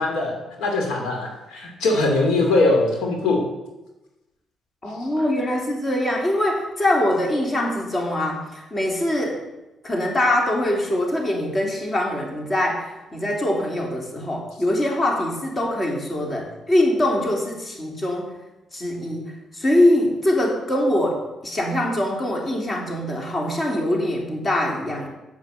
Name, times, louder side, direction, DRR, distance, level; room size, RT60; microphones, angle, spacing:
voice 1, 0.0-3.4, left 2 dB, 90° left, 1 dB, 2.5 m, -21 dB
voice 2, 4.8-9.5 9.8-18.3 18.7-25.1, left 1 dB, 30° left, 0 dB, 3.0 m, -23 dB
8.0 x 7.9 x 7.9 m, 1.0 s
cardioid pair, 90°, 0 cm